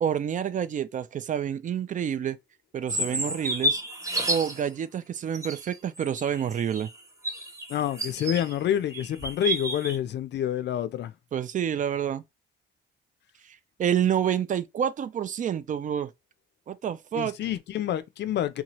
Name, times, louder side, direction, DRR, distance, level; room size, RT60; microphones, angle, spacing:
voice 1, 0.0-2.4 2.7-3.8 4.3-6.9 11.3-12.2 13.4-16.1 16.7-17.4, right 9 dB, 40° right, 0.4 m, -28 dB
sound 1, 2.9-4.6 5.3-8.6 8.9-10.0, right 1 dB, 15° right, 0.7 m, -31 dB
voice 2, 7.7-11.1 17.1-18.6, left 10 dB, 60° left, 0.4 m, -28 dB
2.8 x 2.4 x 2.9 m
cardioid pair, 90°, 20 cm